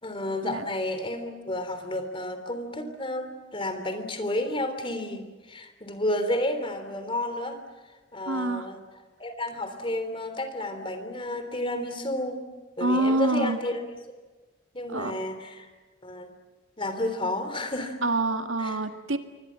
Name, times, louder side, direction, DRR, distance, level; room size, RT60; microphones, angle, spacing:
voice 1, 0.0-7.6 8.1-8.8 9.2-12.4 12.8-14.0 14.7-15.7 16.0-16.3 16.8-18.0 18.6-18.8, left 1 dB, 25° left, 8 dB, 3.4 m, -31 dB
voice 2, 8.3-8.7 12.8-13.6 14.9-15.1 18.0-19.2, right 2 dB, 80° right, 7 dB, 1.8 m, -26 dB
27.5 x 24.0 x 7.6 m, 1.3 s
head